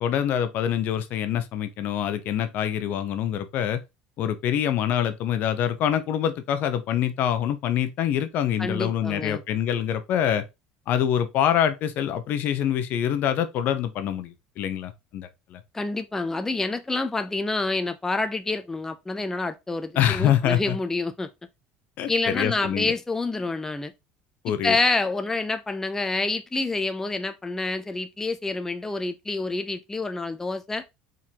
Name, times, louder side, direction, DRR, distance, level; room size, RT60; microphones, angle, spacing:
voice 1, 0.0-3.8 4.2-10.4 10.9-15.6 20.0-20.8 22.0-22.9 24.4-24.8, left 10 dB, 60° left, 0.8 m, -25 dB
voice 2, 8.6-9.4 15.7-21.3 22.1-23.9 24.5-30.8, left 3 dB, 10° left, 0.4 m, -27 dB
4.5 x 3.8 x 2.8 m
supercardioid pair, 105°, 4 cm